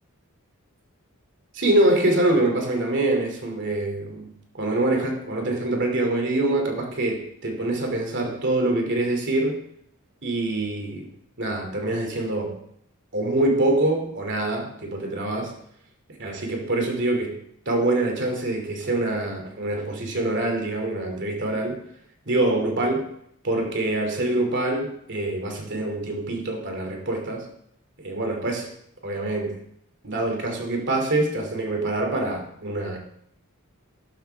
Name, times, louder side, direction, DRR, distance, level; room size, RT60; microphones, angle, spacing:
voice 1, 1.5-9.6 10.2-11.1 11.4-12.6 13.1-15.6 16.2-17.4 17.7-21.8 22.3-23.1 23.4-27.5 28.0-28.7 29.0-29.6 30.0-33.0, right 2 dB, 55° right, 2.7 m, -25 dB
13.0 x 11.5 x 3.5 m
head